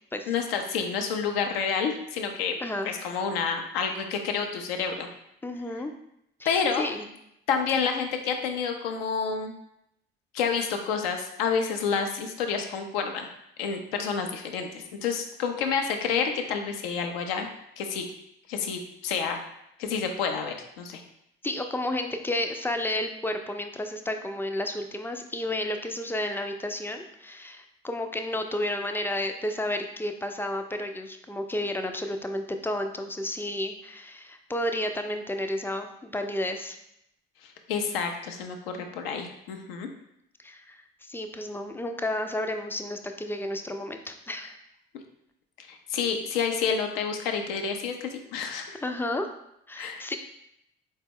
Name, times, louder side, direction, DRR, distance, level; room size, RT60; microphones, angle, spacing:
voice 1, 0.3-2.6 2.9-5.1 6.5-6.8 7.5-9.5 10.3-13.3 13.6-17.5 17.8-18.1 18.5-19.4 19.8-21.0 37.4-39.9 45.6-48.8 49.8-50.1, left 6 dB, 75° left, 5 dB, 0.5 m, -29 dB
voice 2, 2.6-3.0 5.4-5.9 6.4-7.1 21.4-36.8 40.4-44.6 48.7-49.3 49.7-50.2, left 1 dB, 10° left, 6 dB, 0.3 m, -32 dB
4.0 x 2.1 x 3.5 m, 0.78 s
figure-of-eight pair, 45°, 30 cm